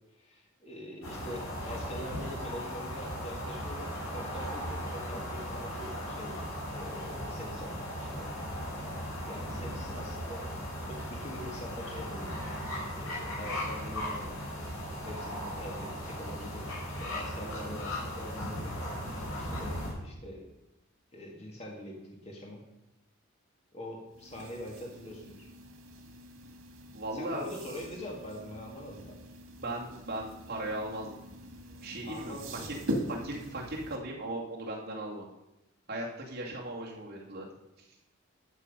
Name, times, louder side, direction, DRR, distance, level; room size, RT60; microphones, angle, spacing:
voice 1, 0.2-6.3 6.7-8.3 9.3-10.5 10.9-12.3 13.0-14.4 15.1-16.7 17.0-20.5 21.1-22.6 23.7-25.5 27.1-29.2 32.0-32.8, equal, 30° left, -1 dB, 1.9 m, -44 dB
sound 1, 1.0-19.9, equal, 85° left, 5.1 m, -37 dB
sound 2, 24.1-34.0, equal, 85° right, 2.0 m, -42 dB
voice 2, 26.9-27.4 29.6-31.2 31.8-32.3 32.6-32.7 33.1-35.3 35.9-37.5, right 1 dB, 50° right, -3 dB, 2.5 m, -37 dB
12.0 x 7.0 x 5.4 m, 0.89 s
head